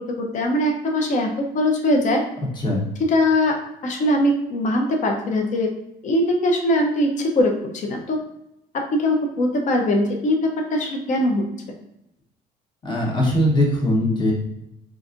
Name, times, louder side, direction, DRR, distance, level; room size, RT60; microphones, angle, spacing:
voice 1, 0.0-2.2 3.1-3.6 3.8-5.7 6.0-8.2 8.7-11.4, left 1 dB, 45° left, 2 dB, 0.7 m, -21 dB
voice 2, 12.8-14.3, left 1 dB, 25° left, -2 dB, 1.1 m, -20 dB
4.1 x 2.5 x 2.5 m, 0.83 s
cardioid pair, 110°, 17 cm